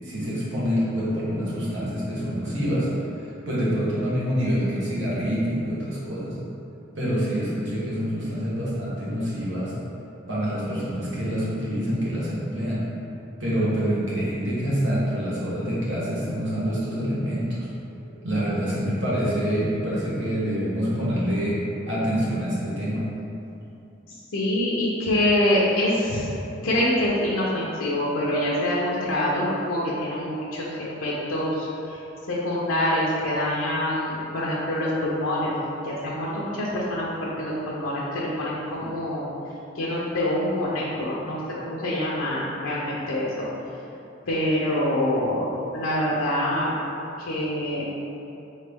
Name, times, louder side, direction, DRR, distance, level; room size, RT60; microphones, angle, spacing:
voice 1, 0.0-2.9 3.1-6.4 6.9-9.7 10.3-12.8 13.4-17.7 18.1-23.0, equal, 60° right, -8 dB, 1.2 m, -26 dB
voice 2, 24.1-26.3 26.6-32.0 32.3-35.5 35.8-39.3 39.7-41.4 41.6-43.5 44.3-45.4 45.7-46.7 47.2-48.0, left 1 dB, 90° left, -6 dB, 0.6 m, -25 dB
3.7 x 3.2 x 3.5 m, 2.8 s
head